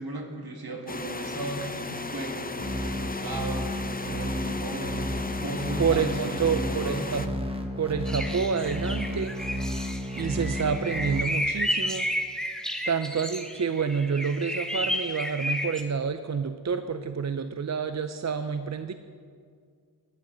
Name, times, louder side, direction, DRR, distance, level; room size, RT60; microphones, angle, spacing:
voice 1, 0.0-3.7 4.1-5.1 5.4-7.2, right 1 dB, 70° right, 1 dB, 2.0 m, -36 dB
sound 1, 0.9-7.3, left 3 dB, 20° left, 0.7 m, -35 dB
sound 2, 2.6-11.2, equal, 15° right, 1.4 m, -32 dB
voice 2, 5.8-7.3 7.8-9.3 10.2-12.1 12.9-18.9, right 6 dB, 45° right, 9 dB, 0.5 m, -28 dB
sound 3, 8.1-15.8, equal, ahead, 1.4 m, -32 dB
19.0 x 11.0 x 3.9 m, 2.1 s
cardioid pair, 45°, 39 cm